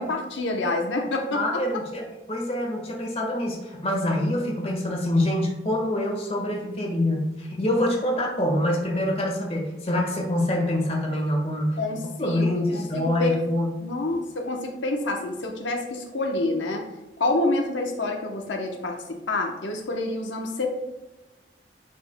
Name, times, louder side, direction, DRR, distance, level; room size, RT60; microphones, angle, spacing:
voice 1, 0.0-1.6 11.8-13.4 13.8-16.8 17.2-20.7, left 2 dB, 90° left, 2 dB, 0.9 m, -27 dB
voice 2, 1.3-11.8 12.2-13.7, left 1 dB, 35° left, 1 dB, 1.4 m, -25 dB
11.0 x 4.7 x 2.2 m, 1.0 s
head